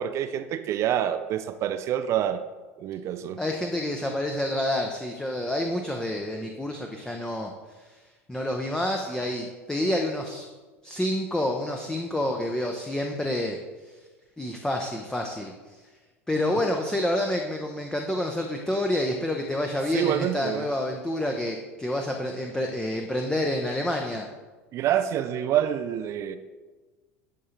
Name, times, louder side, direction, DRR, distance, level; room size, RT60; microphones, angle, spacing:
voice 1, 0.0-2.4 2.8-3.4 19.9-20.7 24.7-26.4, right 10 dB, 40° right, 10 dB, 0.4 m, -27 dB
voice 2, 3.4-7.5 7.8-8.0 8.3-10.5 10.8-13.6 13.9-14.0 14.4-15.5 16.3-24.3, left 1 dB, 10° left, 2 dB, 0.7 m, -28 dB
11.0 x 3.7 x 4.3 m, 1.3 s
figure-of-eight pair, 75°, 8 cm